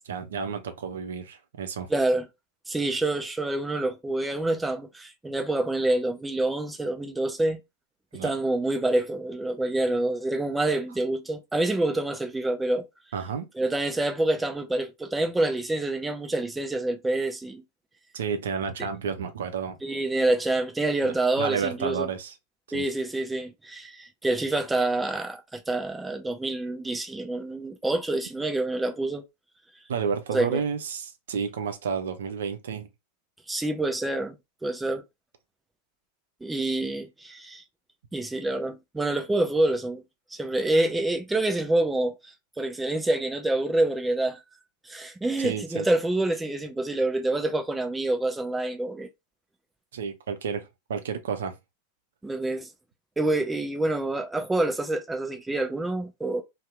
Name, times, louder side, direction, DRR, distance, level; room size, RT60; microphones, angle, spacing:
voice 1, 0.1-1.9 8.1-8.3 13.1-13.5 18.1-19.8 21.0-21.1 21.4-22.3 22.7-22.8 29.9-32.9 45.4-45.9 49.9-51.5, right 6 dB, 60° right, 0.5 m, -31 dB
voice 2, 1.9-2.3 2.7-7.6 8.2-12.9 13.5-17.6 19.8-22.1 22.7-29.2 30.3-30.6 33.5-34.4 34.6-35.0 36.4-37.6 38.1-40.0 40.3-44.4 44.8-49.1 52.2-52.7 53.2-56.4, right 2 dB, 5° right, 0.5 m, -27 dB
2.7 x 2.0 x 3.2 m
figure-of-eight pair, 90°, 0 cm